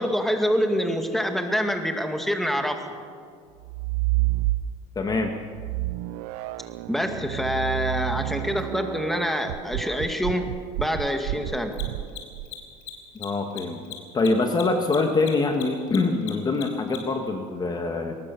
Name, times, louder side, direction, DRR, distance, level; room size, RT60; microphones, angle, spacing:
voice 1, 0.0-2.8 6.9-10.5 10.8-11.8, equal, ahead, 5 dB, 2.2 m, -26 dB
sound 1, 3.6-5.0 5.5-12.5, right 17 dB, 80° right, 0.6 m, -29 dB
voice 2, 4.9-5.4 13.1-13.8 14.1-18.1, left 3 dB, 25° left, 5 dB, 1.6 m, -24 dB
Mechanisms, 8.6-8.7 11.6-17.2, left 12 dB, 80° left, 4.1 m, -39 dB
22.5 x 19.5 x 6.9 m, 2.1 s
supercardioid pair, 125°, 16 cm